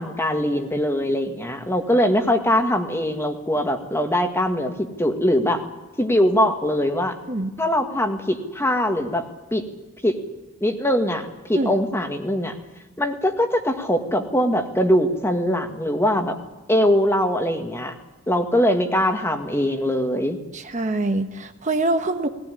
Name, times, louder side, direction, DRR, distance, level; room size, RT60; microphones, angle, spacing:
voice 1, 0.0-5.6 6.0-7.2 7.6-9.3 9.5-9.6 10.0-10.2 10.6-12.5 13.0-16.4 16.7-17.9 18.3-20.4, equal, 15° left, 5 dB, 1.9 m, -22 dB
voice 2, 20.5-22.3, right 2 dB, 40° right, 7 dB, 1.3 m, -24 dB
19.5 x 18.0 x 10.0 m, 1.1 s
head